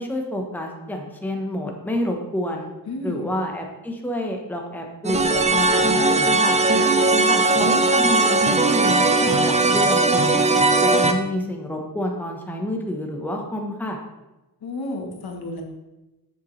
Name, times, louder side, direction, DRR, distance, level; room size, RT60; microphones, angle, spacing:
voice 1, 0.0-2.7 3.0-6.6 7.3-10.4 10.8-14.0, left 1 dB, 5° left, 1 dB, 1.0 m, -29 dB
voice 2, 2.9-3.3 6.9-7.6 14.6-15.6, left 2 dB, 70° left, 2 dB, 1.3 m, -33 dB
sound 1, 5.0-11.1, right 3 dB, 20° right, 0.5 m, -18 dB
7.6 x 6.7 x 3.2 m, 1.0 s
wide cardioid pair, 105°, 39 cm